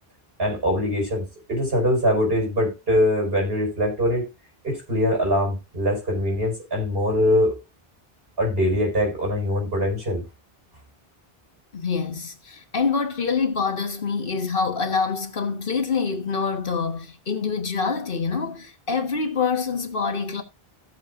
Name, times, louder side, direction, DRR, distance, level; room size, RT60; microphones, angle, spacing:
voice 1, 0.4-4.3 4.6-7.5 8.4-10.2, equal, 70° right, 5.7 m, -23 dB
voice 2, 11.7-20.4, left 5 dB, 60° left, 1.5 m, -26 dB
16.5 x 7.1 x 2.5 m
omnidirectional pair, 1.0 m